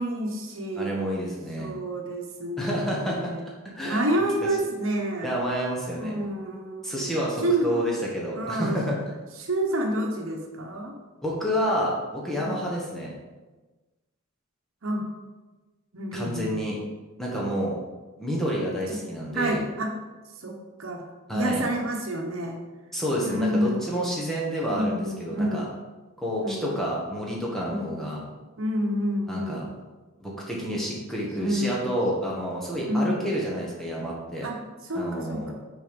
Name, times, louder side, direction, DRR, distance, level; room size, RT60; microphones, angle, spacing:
voice 1, 0.0-0.9 1.6-3.5 3.8-5.3 5.9-7.2 7.4-7.9 8.3-8.8 9.4-11.0 12.4-12.8 14.8-15.1 15.9-16.6 18.9-19.0 19.3-19.9 20.4-21.0 21.3-22.6 23.2-24.1 24.7-25.7 26.4-26.8 27.7-28.0 28.6-29.6 31.4-31.9 32.9-33.3 34.4-34.6 34.8-35.5, right 1 dB, 75° right, 1 dB, 1.0 m, -29 dB
voice 2, 0.7-1.7 2.6-3.3 3.6-4.3 5.2-6.1 6.8-9.1 11.2-13.1 16.1-16.8 17.2-17.8 18.2-19.6 21.3-21.6 22.9-25.7 26.2-28.2 29.3-29.6 30.2-34.5 34.9-35.5, equal, ahead, -4 dB, 1.2 m, -29 dB
6.3 x 4.1 x 5.2 m, 1.2 s
head